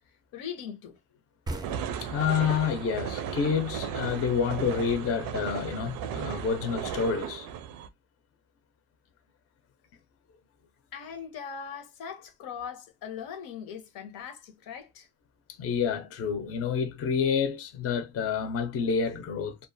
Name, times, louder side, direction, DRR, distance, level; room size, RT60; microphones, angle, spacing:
voice 1, 0.3-1.0 10.9-15.1, left 7 dB, 85° left, 0.8 m, -40 dB
sound 1, 1.5-4.9, right 2 dB, 15° right, 0.3 m, -41 dB
sound 2, 1.6-7.9, right 8 dB, 85° right, 0.5 m, -35 dB
voice 2, 2.0-7.5 15.6-19.6, left 6 dB, 45° left, 0.5 m, -28 dB
2.3 x 2.2 x 2.5 m
cardioid pair, 125°, 34 cm